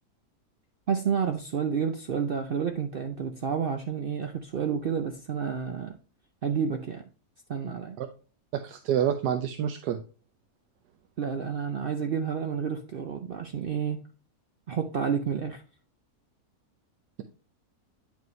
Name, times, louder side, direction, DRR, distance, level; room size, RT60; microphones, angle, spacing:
voice 1, 0.9-6.0 6.4-7.1 7.5-8.0 11.2-14.0 14.7-15.6, right 7 dB, 75° right, 6 dB, 0.5 m, -30 dB
voice 2, 8.6-10.0, right 9 dB, 90° right, 6 dB, 1.2 m, -27 dB
9.2 x 5.2 x 3.1 m, 0.36 s
omnidirectional pair, 1.7 m